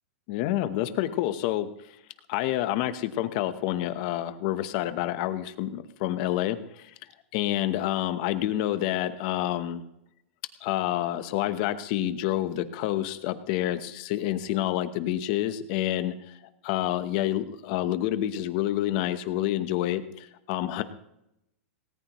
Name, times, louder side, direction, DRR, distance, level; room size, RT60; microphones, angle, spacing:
voice 1, 0.3-1.7 2.3-6.9 7.3-9.8 10.6-20.8, left 13 dB, 35° left, 12 dB, 1.0 m, -28 dB
18.5 x 18.5 x 3.1 m, 0.83 s
supercardioid pair, 170°, 7 cm